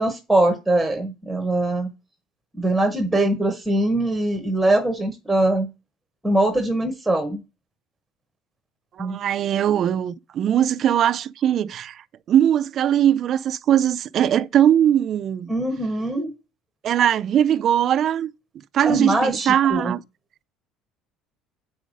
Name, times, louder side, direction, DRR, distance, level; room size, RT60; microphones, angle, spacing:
voice 1, 0.0-1.9 2.6-5.7 6.2-7.4 9.0-9.2 15.5-16.3 18.8-19.9, right 1 dB, 5° right, 0.9 m, -22 dB
voice 2, 9.0-15.5 16.8-18.3 18.7-20.0, right 10 dB, 35° right, 0.4 m, -20 dB
8.4 x 5.3 x 5.0 m
cardioid pair, 175°, 0 cm